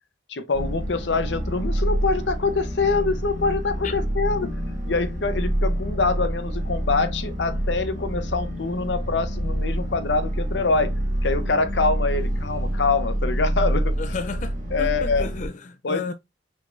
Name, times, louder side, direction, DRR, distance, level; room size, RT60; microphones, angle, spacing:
voice 1, 0.3-4.6 4.8-14.0 14.7-15.3 15.8-16.1, left 3 dB, 85° left, 0.8 m, -25 dB
sound 1, 0.5-15.5, right 1 dB, 45° right, 2.0 m, -27 dB
voice 2, 14.0-16.1, left 4 dB, 45° left, 0.4 m, -32 dB
6.4 x 3.2 x 2.5 m
head